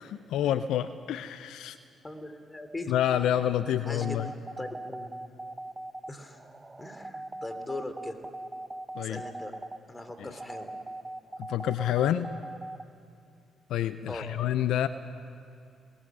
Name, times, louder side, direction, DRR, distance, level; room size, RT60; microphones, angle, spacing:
voice 1, 0.0-1.8 2.9-4.3 8.9-9.2 10.2-10.3 11.4-12.3 13.7-14.9, left 11 dB, 75° left, 12 dB, 0.6 m, -28 dB
voice 2, 2.0-2.9 3.4-5.1 6.1-6.4 6.8-8.2 9.0-9.5 9.9-10.7 14.1-14.3, left 2 dB, 20° left, 7 dB, 3.1 m, -40 dB
sound 1, 4.0-12.8, right 2 dB, 25° right, 1.0 m, -40 dB
26.0 x 20.5 x 6.3 m, 2.4 s
supercardioid pair, 50°, 0 cm